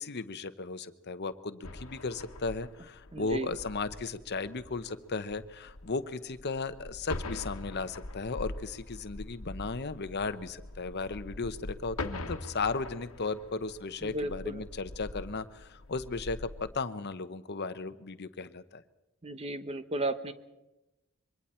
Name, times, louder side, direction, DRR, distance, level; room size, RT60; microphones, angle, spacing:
voice 1, 0.0-18.8, left 4 dB, 50° left, 11 dB, 0.9 m, -36 dB
sound 1, 1.6-16.8, left 2 dB, 80° left, 1.4 m, -43 dB
voice 2, 3.1-3.5 14.0-14.6 19.2-20.3, right 1 dB, 30° right, 11 dB, 1.0 m, -34 dB
26.5 x 23.0 x 4.4 m, 0.98 s
head